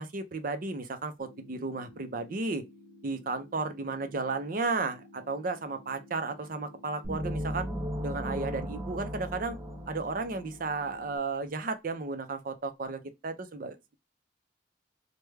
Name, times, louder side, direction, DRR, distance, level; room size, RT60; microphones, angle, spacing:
voice 1, 0.0-2.6 3.0-7.7 8.0-9.6 9.9-13.9, right 3 dB, 50° right, 0.5 m, -34 dB
sound 1, 1.2-11.2, left 1 dB, 25° left, 1.4 m, -54 dB
sound 2, 7.0-10.8, equal, 15° right, 0.7 m, -36 dB
3.3 x 2.2 x 3.2 m
head